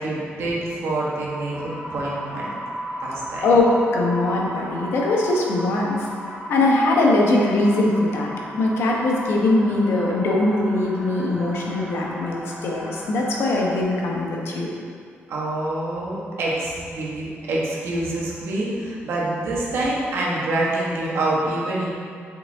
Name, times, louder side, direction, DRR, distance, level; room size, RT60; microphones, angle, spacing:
voice 1, 0.0-2.5 3.0-3.4 15.3-21.9, right 2 dB, 70° right, -5 dB, 1.4 m, -26 dB
sound 1, 1.5-13.8, equal, 20° right, 1.2 m, -36 dB
voice 2, 3.4-6.1 6.5-14.7, left 2 dB, 65° left, -1 dB, 1.0 m, -21 dB
6.3 x 5.0 x 3.5 m, 2.2 s
cardioid pair, 165°, 4 cm